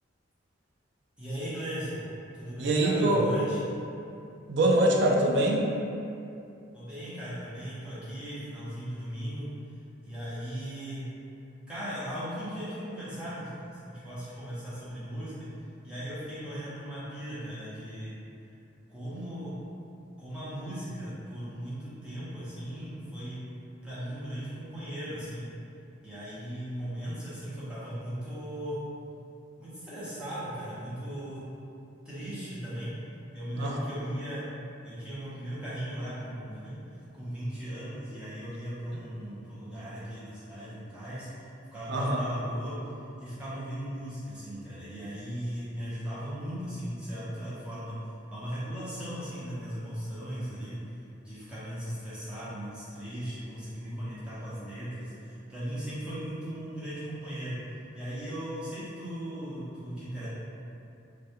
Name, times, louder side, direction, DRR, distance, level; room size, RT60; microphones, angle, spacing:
voice 1, 1.2-2.0 2.3-3.6 6.7-9.5 10.0-11.0 11.7-15.5 15.8-18.1 18.9-19.5 20.2-23.4 23.8-25.5 26.0-28.8 29.6-31.4 32.0-32.9 33.3-34.4 34.8-41.4 41.7-42.8 43.2-47.9 48.3-51.0 51.2-57.6 57.9-60.3, equal, 5° right, -12 dB, 0.7 m, -37 dB
voice 2, 2.6-3.2 4.5-5.6 33.5-33.8 41.9-42.2, right 1 dB, 60° right, 0 dB, 0.3 m, -24 dB
2.3 x 2.2 x 2.7 m, 2.6 s
head